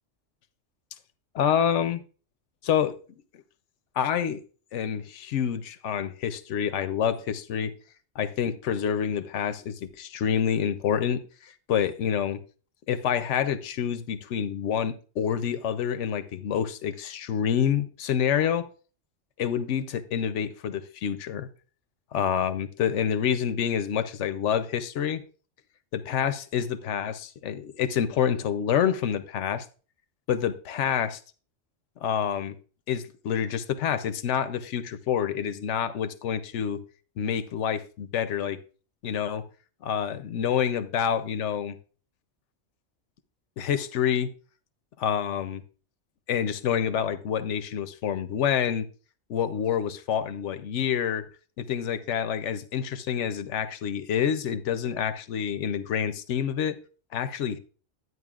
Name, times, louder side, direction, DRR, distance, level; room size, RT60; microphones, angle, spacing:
voice 1, 1.3-2.0 2.6-2.9 4.0-4.4 4.7-7.7 8.2-12.4 12.9-18.7 19.4-21.5 22.1-25.2 25.9-29.7 30.3-31.2 32.0-32.6 32.9-36.8 37.2-38.6 39.0-39.4 39.8-41.8 43.6-44.3 45.0-45.6 46.3-48.9 49.3-51.2 51.6-56.8 57.1-57.6, left 8 dB, 90° left, 1.0 m, -27 dB
11.0 x 9.4 x 2.4 m
omnidirectional pair, 1.2 m